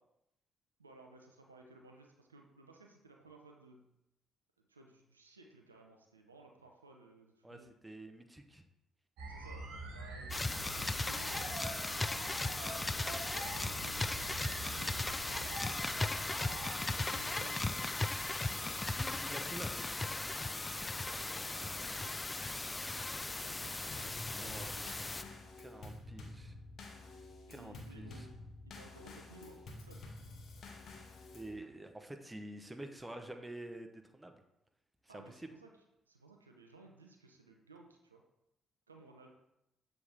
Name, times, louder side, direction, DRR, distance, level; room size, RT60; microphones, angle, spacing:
voice 1, 0.8-3.9 4.7-7.7 9.2-10.5 10.7-11.4 12.0-14.3 14.6-16.4 16.8-17.9 18.3-19.2 20.9-23.8 24.3-24.9 27.4-28.3 28.6-30.1 35.1-35.7 36.1-38.2 38.9-39.3, right 3 dB, 90° right, 2 dB, 0.4 m, -58 dB
voice 2, 7.4-8.6 16.9-17.0 19.0-20.2 24.3-24.7 25.6-26.5 27.5-28.3 31.3-34.4 35.0-35.5, right 1 dB, 10° right, 6 dB, 0.8 m, -48 dB
sound 1, 9.2-16.8, right 2 dB, 65° right, 1.0 m, -45 dB
sound 2, 10.3-25.2, left 2 dB, 20° left, 0.3 m, -37 dB
Drum kit / Snare drum / Bass drum, 23.9-31.6, left 2 dB, 55° left, 0.9 m, -50 dB
6.9 x 4.0 x 3.4 m, 0.85 s
figure-of-eight pair, 45°, 0 cm